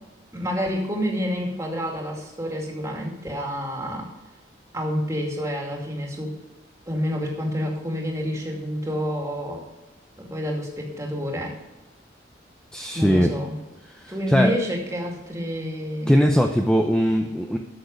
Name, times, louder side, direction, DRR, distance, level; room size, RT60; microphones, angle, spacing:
voice 1, 0.3-4.1 4.7-6.3 6.9-9.6 10.2-11.6 12.9-13.6 14.1-16.2, equal, 15° right, -1 dB, 2.3 m, -28 dB
voice 2, 12.7-13.3 13.9-14.5 16.1-17.6, equal, 5° left, 3 dB, 0.6 m, -20 dB
13.0 x 6.6 x 5.3 m, 1.1 s
head